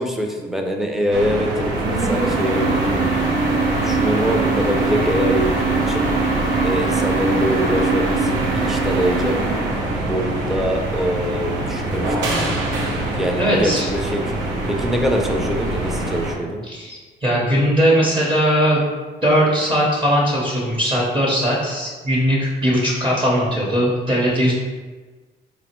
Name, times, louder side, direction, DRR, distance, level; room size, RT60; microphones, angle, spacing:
voice 1, 0.0-3.0 3.7-6.1 6.6-9.4 9.9-12.5 13.1-14.3 14.7-16.6, equal, ahead, 2 dB, 0.5 m, -24 dB
sound 1, 1.1-16.4, right 2 dB, 85° right, 0.7 m, -22 dB
voice 2, 13.4-13.9 16.6-18.8 19.2-24.5, equal, 25° right, -4 dB, 0.8 m, -19 dB
3.5 x 2.1 x 4.3 m, 1.3 s
cardioid pair, 90°, 20 cm